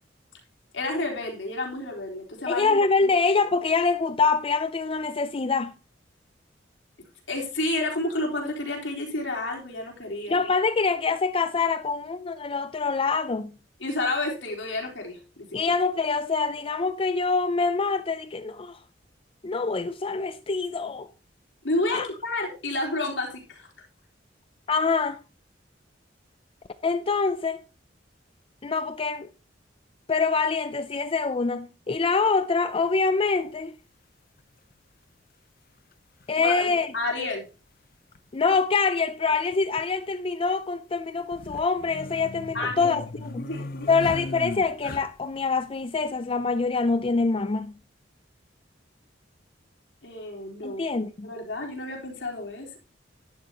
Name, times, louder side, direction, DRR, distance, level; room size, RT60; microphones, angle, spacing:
voice 1, 0.7-3.1 7.3-10.4 13.8-15.6 21.6-23.7 36.4-37.5 42.5-43.0 43.3-44.1 50.0-50.8 51.2-52.8, left 2 dB, 80° left, 4.0 m, -30 dB
voice 2, 2.5-5.7 10.3-13.5 15.5-18.8 19.4-21.1 21.9-22.1 24.7-25.2 26.8-27.6 28.6-29.3 30.1-33.7 36.3-36.9 38.3-43.5 43.9-47.7 50.6-51.3, left 4 dB, 30° left, 0.5 m, -25 dB
sound 1, 32.8-32.9 34.4-34.5 35.9-36.0 36.2-36.3 38.2-38.3 38.5-38.6 39.3-39.8 41.2-45.4, left 2 dB, 55° left, 0.8 m, -37 dB
12.0 x 11.0 x 2.9 m
head